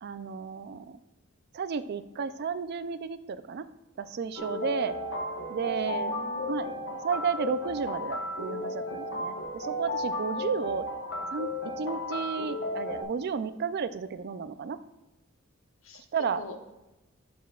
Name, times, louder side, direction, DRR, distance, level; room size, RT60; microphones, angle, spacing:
voice 1, 0.0-1.0 1.5-3.6 4.0-5.0 5.5-6.1 6.5-6.7 7.0-10.9 11.3-11.5 11.8-14.8 16.1-16.4, right 6 dB, 50° right, 13 dB, 0.4 m, -32 dB
sound 1, 4.4-13.0, left 1 dB, 60° left, 1.1 m, -34 dB
voice 2, 5.7-6.5 15.8-16.0 16.4-16.6, left 2 dB, 80° left, 4 dB, 1.0 m, -43 dB
11.5 x 6.0 x 2.4 m, 1.0 s
head